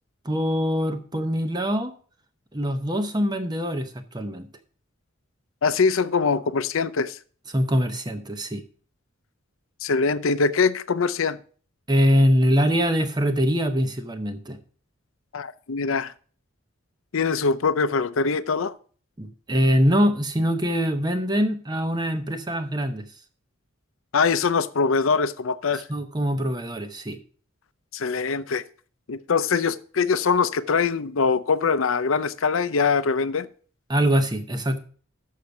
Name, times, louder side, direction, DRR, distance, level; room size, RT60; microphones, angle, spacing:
voice 1, 0.2-1.9 2.5-4.5 7.5-8.6 11.9-14.6 19.2-23.0 25.9-27.2 33.9-34.8, equal, 20° right, 0.8 m, -23 dB
voice 2, 5.6-7.2 9.8-11.4 15.3-16.1 17.1-18.7 24.1-25.9 27.9-28.6 29.1-33.5, left 5 dB, 80° left, 0.6 m, -23 dB
6.6 x 6.6 x 6.9 m
head